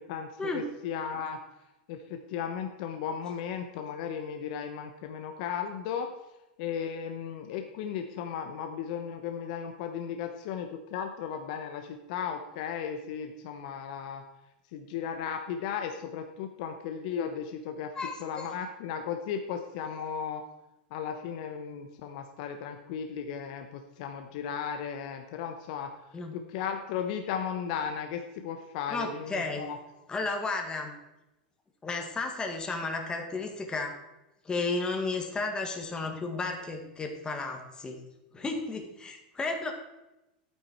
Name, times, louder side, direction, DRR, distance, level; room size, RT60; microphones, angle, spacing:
voice 1, 0.1-1.4 1.9-6.1 6.6-14.2 14.7-17.9 18.2-20.4 20.9-25.9 26.3-29.8, left 7 dB, 60° left, 6 dB, 1.1 m, -35 dB
voice 2, 17.9-18.5 26.1-26.4 28.9-29.6 30.1-30.9 31.8-33.9 34.4-38.0 38.3-39.7, left 3 dB, 15° left, 3 dB, 1.9 m, -33 dB
11.5 x 9.2 x 4.6 m, 0.96 s
hypercardioid pair, 115°, 5 cm